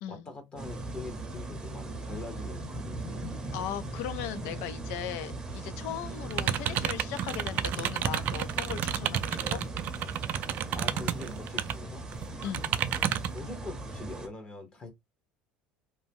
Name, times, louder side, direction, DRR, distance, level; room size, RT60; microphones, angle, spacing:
voice 1, 0.1-3.0 10.7-12.1 13.3-14.9, left 3 dB, 30° left, 1.0 m, -43 dB
sound 1, 0.6-14.3, right 2 dB, 20° right, 0.7 m, -39 dB
voice 2, 3.5-9.6 12.4-12.7, left 10 dB, 75° left, 0.4 m, -38 dB
sound 2, 6.3-11.7 12.1-13.4, right 10 dB, 50° right, 0.4 m, -31 dB
2.7 x 2.1 x 3.4 m
supercardioid pair, 115°, 4 cm